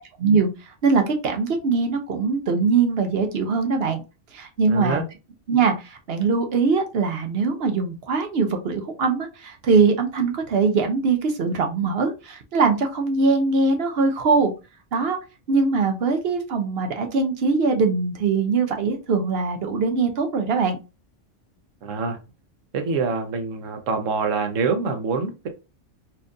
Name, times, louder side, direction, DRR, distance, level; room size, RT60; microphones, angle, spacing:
voice 1, 0.2-4.0 4.3-5.0 5.5-14.5 14.9-15.2 15.5-20.8, right 4 dB, 60° right, 5 dB, 0.8 m, -22 dB
voice 2, 4.7-5.0 21.8-22.2 22.7-25.5, right 4 dB, 85° right, 6 dB, 1.2 m, -25 dB
4.3 x 2.5 x 2.5 m, 0.28 s
omnidirectional pair, 1.3 m